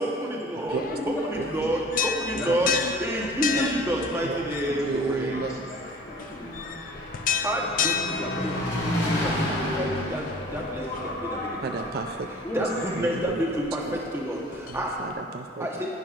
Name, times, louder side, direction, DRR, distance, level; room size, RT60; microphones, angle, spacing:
voice 1, 0.0-0.8 1.2-1.8 2.2-2.7 3.0-5.5 7.4-11.7 12.5-15.0 15.6-15.9, equal, 15° right, -2 dB, 0.9 m, -29 dB
sound 1, 0.7-15.1, left 7 dB, 45° left, 0.4 m, -34 dB
voice 2, 0.8-2.7 3.4-4.2 4.6-5.7 6.0-6.7 9.4-9.5 12.4-12.6, left 1 dB, 15° left, -4 dB, 1.3 m, -37 dB
voice 3, 1.4-1.7 2.4-2.9 3.5-4.5 4.9-5.7 11.6-12.3 12.6-12.7 13.0-13.4 13.8-14.0 14.7-15.7, right 4 dB, 55° right, 5 dB, 0.4 m, -33 dB
Engine, 4.4-13.3, left 1 dB, 80° left, 2.3 m, -32 dB
10.5 x 10.5 x 2.5 m, 2.3 s
head